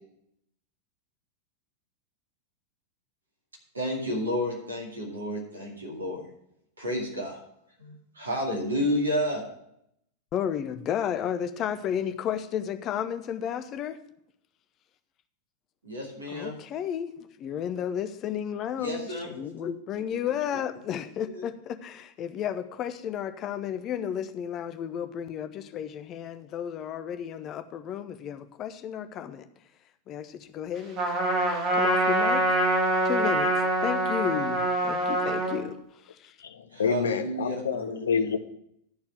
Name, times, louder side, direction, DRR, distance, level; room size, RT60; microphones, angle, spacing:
voice 1, 3.7-6.2 6.8-7.4 7.8-9.4 15.8-16.6 18.8-19.3 21.3-21.4 36.7-38.3, equal, 75° right, -2 dB, 2.3 m, -31 dB
voice 2, 10.3-14.0 16.3-17.1 17.4-29.5 30.1-31.0 31.7-32.4 33.0-33.5 33.8-35.8 36.1-36.3, left 9 dB, 35° left, 10 dB, 0.7 m, -32 dB
Trumpet, 31.0-35.6, right 1 dB, 35° right, 2.2 m, -25 dB
voice 3, 36.4-38.4, left 6 dB, 65° left, 9 dB, 0.7 m, -28 dB
12.0 x 4.3 x 7.5 m, 0.75 s
figure-of-eight pair, 90°, 0 cm